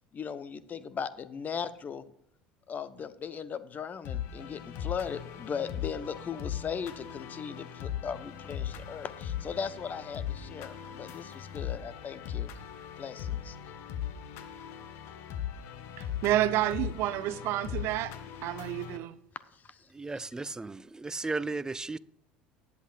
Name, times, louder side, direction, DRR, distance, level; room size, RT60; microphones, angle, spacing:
voice 1, 0.1-2.1 2.7-12.5 13.0-13.6 19.5-19.9, left 7 dB, 35° left, 1.0 m, -38 dB
sound 1, 4.0-19.0, left 9 dB, 60° left, 1.2 m, -39 dB
voice 2, 16.0-18.1 18.4-19.1, right 13 dB, 60° right, 0.8 m, -29 dB
voice 3, 19.9-22.0, right 3 dB, 15° right, 0.5 m, -35 dB
19.5 x 8.3 x 2.5 m
hypercardioid pair, 70°, 5 cm